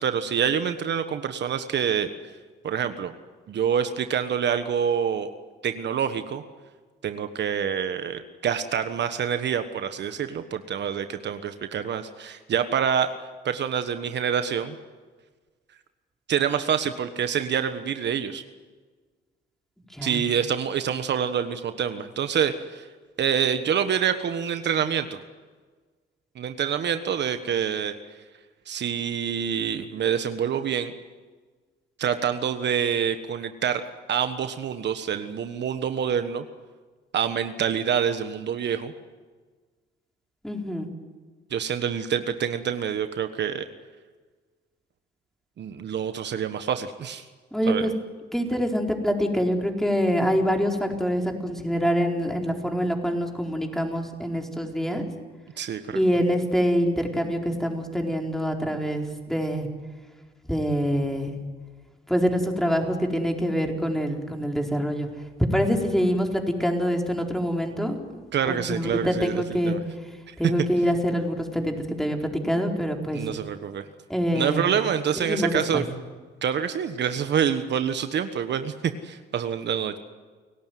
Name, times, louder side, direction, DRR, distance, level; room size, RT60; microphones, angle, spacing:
voice 1, 0.0-2.1 2.6-3.1 3.5-5.3 5.6-6.4 7.0-13.1 13.4-14.7 16.3-18.4 20.0-22.9 23.2-25.2 26.3-27.9 28.7-30.9 32.0-33.8 34.1-36.4 37.1-38.9 41.5-43.6 45.6-47.2 47.7-47.9 55.6-56.0 68.3-69.8 70.3-70.4 73.1-73.8 74.3-75.8 76.4-80.0, right 8 dB, 60° right, 9 dB, 1.4 m, -26 dB
voice 2, 40.4-40.9 47.5-47.9 48.3-55.0 55.9-59.7 60.5-61.4 62.1-65.1 65.4-68.0 68.5-69.8 70.4-72.2 72.4-73.2 74.1-74.6 75.2-75.8, equal, ahead, 2 dB, 4.4 m, -25 dB
30.0 x 17.5 x 9.4 m, 1.4 s
cardioid pair, 90°, 20 cm